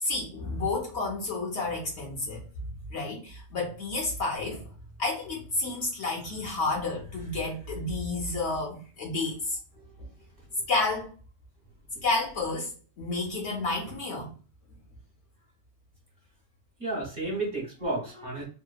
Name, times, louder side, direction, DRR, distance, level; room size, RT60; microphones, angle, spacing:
voice 1, 0.0-2.4 2.9-4.7 5.0-9.6 10.7-11.1 12.0-14.3, left 3 dB, 60° left, 0.9 m, -30 dB
voice 2, 16.8-18.4, right 2 dB, 40° right, 1.1 m, -32 dB
2.8 x 2.1 x 2.3 m
omnidirectional pair, 1.4 m